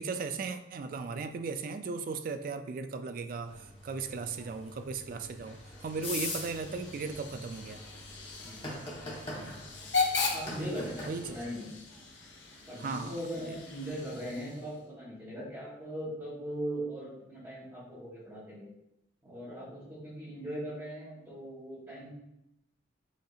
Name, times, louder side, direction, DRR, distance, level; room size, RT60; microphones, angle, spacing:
voice 1, 0.0-7.8 11.1-11.4 12.8-13.1 13.5-13.6, right 4 dB, 45° right, 8 dB, 0.3 m, -37 dB
sound 1, 3.4-11.5, left 2 dB, 30° left, 1.0 m, -43 dB
Hiss / Train / Alarm, 5.2-14.9, left 4 dB, 65° left, 0.8 m, -38 dB
voice 2, 8.4-8.7 9.3-9.6 10.3-11.7 12.7-18.7 19.2-22.1, right 1 dB, 20° right, -11 dB, 1.4 m, -39 dB
8.1 x 2.7 x 2.4 m, 0.87 s
head